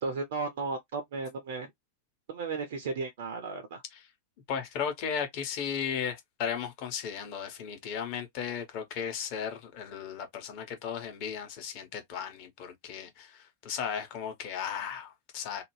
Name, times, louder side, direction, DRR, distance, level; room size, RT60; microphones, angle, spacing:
voice 1, 0.0-1.7 2.3-3.8, right 4 dB, 55° right, 0.6 m, -34 dB
voice 2, 4.5-15.6, left 7 dB, 45° left, 1.0 m, -35 dB
2.7 x 2.2 x 3.1 m
figure-of-eight pair, 90°, 0 cm